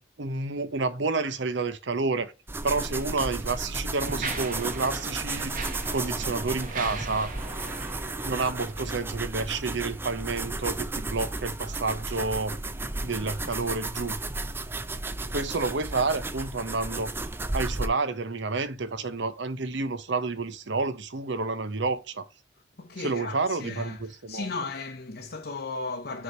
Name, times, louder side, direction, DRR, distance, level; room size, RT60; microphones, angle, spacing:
voice 1, 0.0-2.3 2.6-5.6 5.9-7.3 8.2-12.6 13.0-14.2 15.3-17.1 17.5-22.2 23.0-24.5, right 3 dB, 60° right, 0.8 m, -29 dB
sound 1, 2.5-17.9, right 2 dB, 10° right, 0.4 m, -34 dB
Mechanisms, 2.6-2.7 3.4-9.2, right 4 dB, 45° right, 1.1 m, -39 dB
voice 2, 2.8-3.1 22.8-26.2, left 3 dB, 50° left, 0.7 m, -36 dB
6.4 x 3.0 x 5.4 m
head